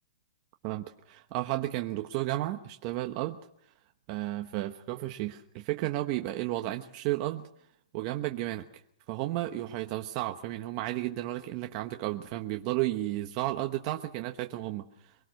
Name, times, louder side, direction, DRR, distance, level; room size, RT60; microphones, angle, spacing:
voice 1, 0.6-3.4 4.1-7.5 7.9-8.7 9.1-15.1, right 16 dB, 35° right, 5 dB, 1.1 m, -33 dB
24.0 x 18.5 x 6.5 m, 0.72 s
hypercardioid pair, 155°, 4 cm